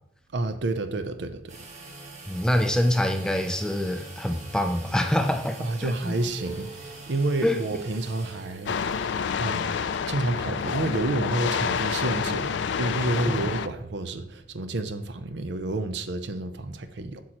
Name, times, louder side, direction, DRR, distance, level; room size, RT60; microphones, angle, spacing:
voice 1, 0.3-1.6 5.6-9.7 10.0-17.2, right 2 dB, 75° right, 9 dB, 0.6 m, -30 dB
sound 1, 1.5-13.4, right 2 dB, 40° right, 1.4 m, -46 dB
sound 2, 1.6-8.8, right 3 dB, 90° right, 1.6 m, -49 dB
voice 2, 2.3-6.1 7.4-7.6 13.2-13.3, left 1 dB, 5° left, 6 dB, 0.4 m, -25 dB
sound 3, 8.7-13.7, left 6 dB, 80° left, 0.4 m, -28 dB
8.2 x 6.2 x 3.0 m, 0.75 s
head